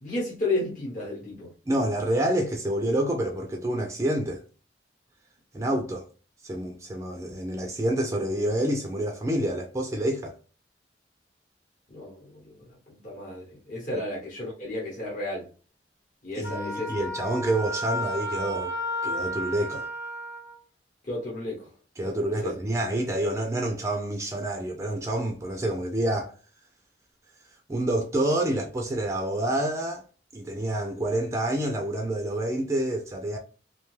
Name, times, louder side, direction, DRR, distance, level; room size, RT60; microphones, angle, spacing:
voice 1, 0.0-1.5 11.9-15.5 16.2-16.9 21.0-21.7 22.0-22.2 22.4-22.6, left 2 dB, 45° left, 1.0 m, -33 dB
voice 2, 1.7-4.4 5.5-6.1 6.4-10.4 13.9-14.0 16.4-18.7 19.0-19.8 22.0-26.3 27.7-30.0 30.3-33.4, right 1 dB, 15° right, 0.3 m, -28 dB
Wind instrument woodwind instrument, 16.4-20.6, equal, 85° left, 1.2 m, -32 dB
2.6 x 2.2 x 3.1 m
head